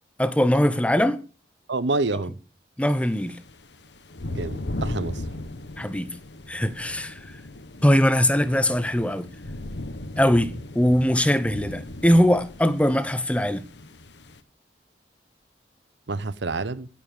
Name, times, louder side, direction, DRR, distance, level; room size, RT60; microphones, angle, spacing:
voice 1, 0.2-1.2 2.8-3.4 5.8-6.1 6.5-7.3 7.8-9.3 10.2-13.6, equal, 5° left, 1.0 m, -21 dB
voice 2, 1.7-2.3 4.3-5.2 16.1-16.9, right 3 dB, 85° right, 0.9 m, -27 dB
sound 1, 2.8-14.4, left 1 dB, 80° left, 1.4 m, -37 dB
16.5 x 8.5 x 6.8 m
head